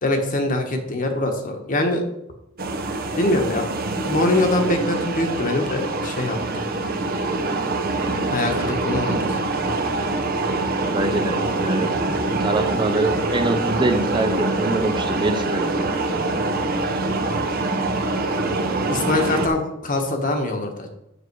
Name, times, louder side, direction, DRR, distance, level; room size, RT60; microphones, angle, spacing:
voice 1, 0.0-2.0 3.2-3.7 3.9-6.7 8.3-9.4 18.9-20.9, left 2 dB, 40° left, 4 dB, 1.3 m, -23 dB
sound 1, 2.6-19.5, right 2 dB, 45° right, 0.9 m, -24 dB
voice 2, 10.8-11.9 12.4-16.3, right 2 dB, 20° right, 7 dB, 0.6 m, -25 dB
8.3 x 6.4 x 4.7 m, 0.84 s
head